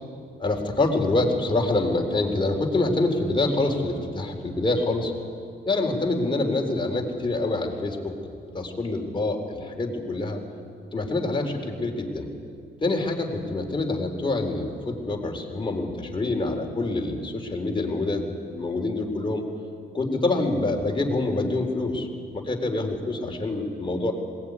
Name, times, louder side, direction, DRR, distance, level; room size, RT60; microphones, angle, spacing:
voice 1, 0.4-5.1 5.7-8.1 8.5-10.4 10.9-12.3 12.8-19.4 19.9-22.1 22.3-24.1, left 2 dB, 25° left, 1 dB, 3.8 m, -26 dB
20.0 x 19.0 x 9.6 m, 2.3 s
cardioid pair, 90°, 20 cm